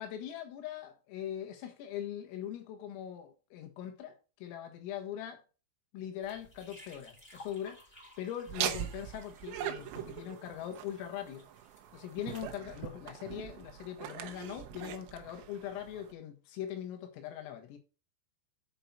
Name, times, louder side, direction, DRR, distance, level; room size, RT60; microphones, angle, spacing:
voice 1, 0.0-5.4 5.9-7.8 8.2-11.5 11.9-17.8, left 10 dB, 80° left, 4.2 m, -41 dB
sound 1, 6.2-12.6, left 1 dB, 15° left, 2.5 m, -57 dB
Laughter, 8.5-16.1, right 11 dB, 75° right, 3.3 m, -41 dB
8.9 x 5.5 x 5.9 m
omnidirectional pair, 6.0 m